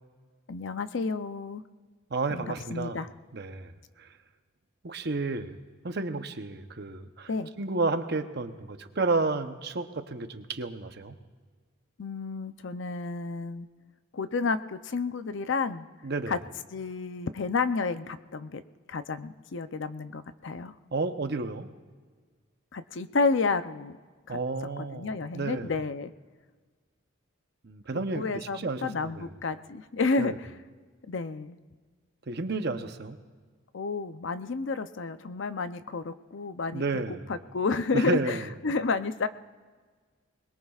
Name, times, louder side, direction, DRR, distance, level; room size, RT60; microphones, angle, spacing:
voice 1, 0.5-1.6 2.3-3.1 7.3-7.5 12.0-13.7 14.1-15.9 16.3-16.4 16.7-18.6 18.9-20.7 22.7-24.0 24.3-24.4 24.8-26.1 28.1-30.3 31.1-31.6 33.7-39.3, left 4 dB, 65° left, 11 dB, 0.6 m, -31 dB
voice 2, 2.1-3.0 3.3-3.7 4.0-4.1 4.8-5.6 5.8-7.3 7.6-11.2 16.0-16.4 20.9-21.7 24.3-25.7 27.6-29.3 30.2-30.4 32.3-33.2 36.7-37.2 37.9-38.5, right 3 dB, 50° right, 8 dB, 0.8 m, -31 dB
22.5 x 21.0 x 2.4 m, 1.5 s
head